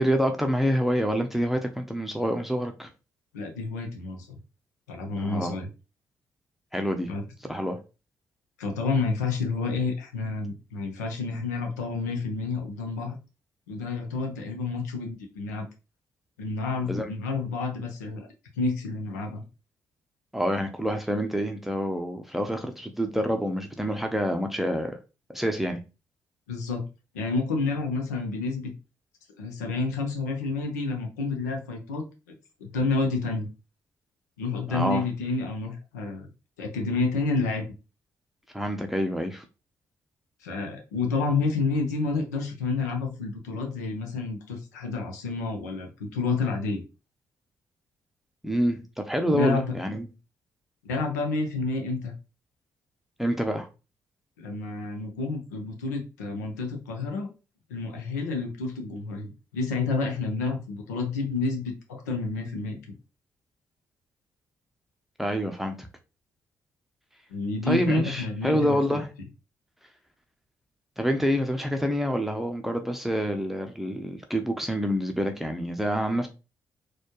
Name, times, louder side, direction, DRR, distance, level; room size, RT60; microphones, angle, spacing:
voice 1, 0.0-2.9 5.2-5.6 6.7-7.1 7.4-7.8 16.8-17.1 20.3-25.0 25.3-25.8 34.7-35.0 38.5-39.4 48.4-48.8 49.1-50.1 53.2-53.7 65.2-65.9 67.7-69.1 71.0-76.3, equal, 5° right, 0.7 m, -27 dB
voice 2, 3.3-4.4 4.9-5.7 7.1-7.2 8.6-13.2 13.7-15.7 16.4-18.3 18.6-19.4 26.5-26.8 27.1-28.7 29.4-32.0 32.6-33.5 34.4-36.3 36.6-37.6 40.4-46.8 49.3-49.7 50.8-52.1 54.4-57.3 57.7-62.8 67.3-69.0, left 4 dB, 85° left, 0.7 m, -29 dB
4.2 x 2.3 x 3.0 m
figure-of-eight pair, 40°, 9 cm